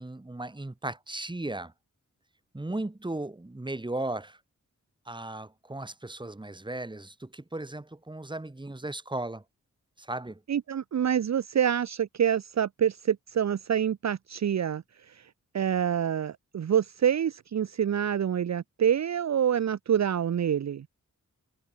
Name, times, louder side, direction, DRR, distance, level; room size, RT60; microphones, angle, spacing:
voice 1, 0.0-1.7 2.5-4.4 5.1-9.4 10.0-10.4, right 2 dB, 15° right, 2.0 m, -36 dB
voice 2, 10.5-15.3 15.5-20.9, right 9 dB, 60° right, 0.7 m, -27 dB
wide cardioid pair, 140°, 30 cm